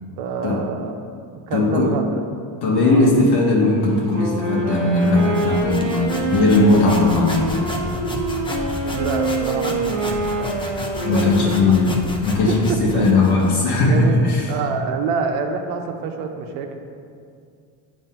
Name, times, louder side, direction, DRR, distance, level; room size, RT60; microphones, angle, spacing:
voice 1, 0.2-1.0 1.5-2.2 2.8-3.1 8.8-10.7 11.0-11.8 12.5-13.1 13.9-14.2 14.5-16.8, right 5 dB, 85° right, 5 dB, 0.8 m, -27 dB
voice 2, 1.5-1.9 2.6-7.7 11.0-14.4, left 2 dB, 55° left, -2 dB, 0.9 m, -18 dB
Wind instrument woodwind instrument, 4.1-12.0, right 2 dB, 35° right, 1.0 m, -25 dB
sound 1, 5.0-13.6, left 1 dB, 10° left, 0.4 m, -32 dB
7.4 x 2.7 x 5.4 m, 2.3 s
cardioid pair, 120°, 49 cm